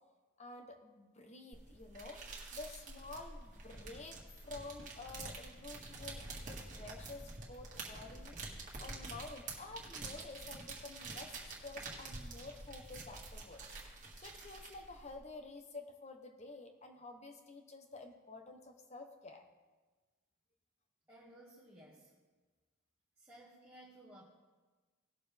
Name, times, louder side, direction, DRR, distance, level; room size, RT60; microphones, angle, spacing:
voice 1, 0.4-2.2 2.5-19.4, left 3 dB, 30° left, 4 dB, 0.9 m, -50 dB
sound 1, 1.5-15.1, right 3 dB, 40° right, 1.7 m, -48 dB
voice 2, 21.1-22.1 23.2-24.2, right 1 dB, 10° right, -7 dB, 1.5 m, -57 dB
18.0 x 6.7 x 3.4 m, 1.3 s
head